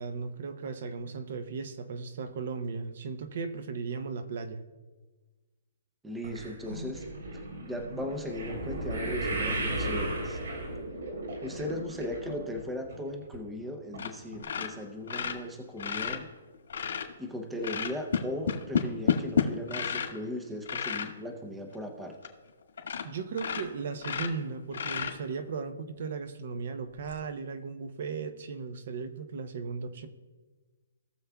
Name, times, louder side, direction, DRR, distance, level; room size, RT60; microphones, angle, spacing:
voice 1, 0.0-4.6 23.0-30.1, right 5 dB, 45° right, 10 dB, 0.7 m, -36 dB
voice 2, 6.0-7.0 7.7-10.4 11.4-16.3 17.2-22.1, left 1 dB, 5° right, 4 dB, 0.6 m, -37 dB
sound 1, 6.2-12.6 12.9-13.4 13.9-14.0 14.3-14.4, right 1 dB, 80° right, 3.3 m, -35 dB
sound 2, 14.0-14.1 14.4-17.1 17.6-20.2 20.6-21.1 21.7-21.8 22.2-22.3 22.8-23.1 23.3-25.5 27.0-27.1, left 7 dB, 70° left, 1.7 m, -31 dB
18.0 x 6.9 x 2.3 m, 1.3 s
hypercardioid pair, 175°, 0 cm